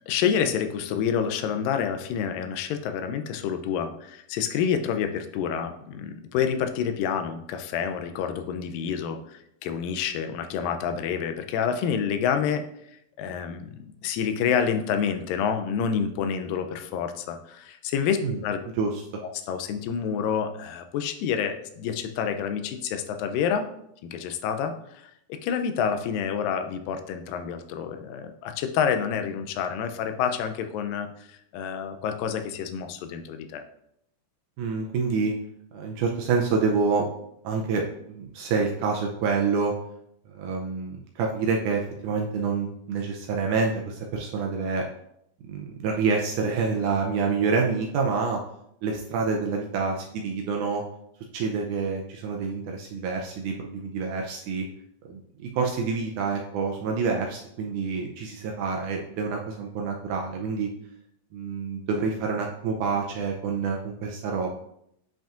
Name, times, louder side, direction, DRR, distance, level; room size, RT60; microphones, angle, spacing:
voice 1, 0.1-12.6 13.2-18.2 18.4-18.6 19.2-23.6 24.0-33.6, left 7 dB, 80° left, 7 dB, 2.2 m, -28 dB
voice 2, 34.6-35.3 35.7-37.1 37.4-39.7 40.3-44.8 45.5-48.4 48.8-50.8 51.3-54.7 55.1-60.7 61.3-64.5, right 4 dB, 85° right, 1 dB, 1.7 m, -27 dB
8.8 x 5.2 x 2.5 m, 0.75 s
omnidirectional pair, 4.2 m